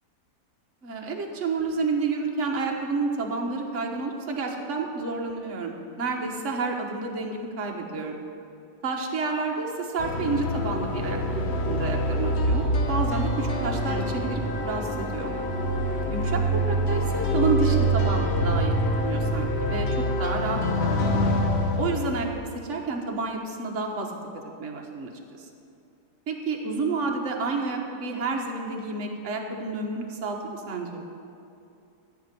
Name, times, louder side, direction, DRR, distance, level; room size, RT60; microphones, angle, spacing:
voice 1, 0.8-8.2 8.8-15.3 16.1-19.9 20.2-21.2 21.8-24.2 24.6-25.1 25.4-25.5 26.3-31.0, right 4 dB, 50° right, 1 dB, 1.5 m, -30 dB
sound 1, 10.0-22.4, equal, 50° left, 1.0 m, -25 dB
14.0 x 5.2 x 9.2 m, 2.6 s
omnidirectional pair, 1.8 m